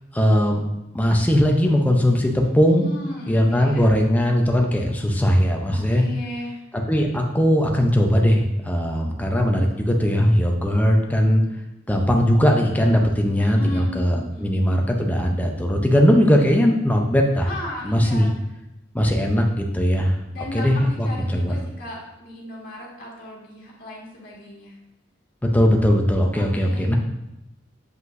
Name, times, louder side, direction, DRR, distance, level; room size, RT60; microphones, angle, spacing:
voice 1, 0.1-0.6 0.9-2.9 3.3-6.0 6.7-11.4 11.9-17.5 17.8-18.3 18.9-20.2 20.5-21.5 25.4-26.9, equal, 10° left, 1 dB, 0.7 m, -19 dB
voice 2, 2.8-4.0 5.7-6.6 13.4-14.5 17.4-18.5 20.3-24.8 26.4-26.9, left 1 dB, 55° left, -4 dB, 1.9 m, -36 dB
8.0 x 5.1 x 2.7 m, 0.91 s
head